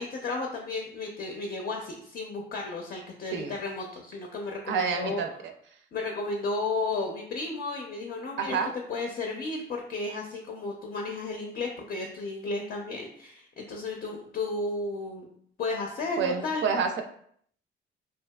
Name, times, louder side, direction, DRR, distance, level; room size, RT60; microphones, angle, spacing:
voice 1, 0.0-5.2 5.9-8.6 8.9-15.3 15.6-16.6, left 3 dB, 50° left, 1 dB, 0.4 m, -33 dB
voice 2, 4.7-5.5 8.4-8.7 16.2-17.0, right 6 dB, 70° right, 5 dB, 0.4 m, -28 dB
2.7 x 2.3 x 2.2 m, 0.64 s
cardioid pair, 90°, 20 cm